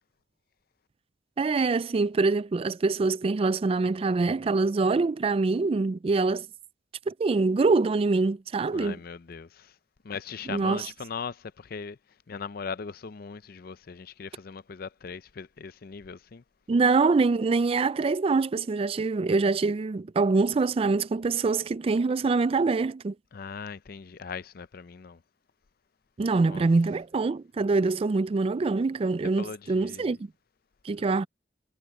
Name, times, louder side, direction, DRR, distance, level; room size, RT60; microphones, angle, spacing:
voice 1, 1.4-6.5 7.1-9.0 10.5-10.9 16.7-23.1 26.2-30.2 30.8-31.3, right 3 dB, 30° right, 0.3 m, -24 dB
voice 2, 8.7-9.7 10.0-12.0 12.3-16.4 23.3-25.2 26.4-26.7 29.4-30.2, left 5 dB, 55° left, 0.5 m, -39 dB
head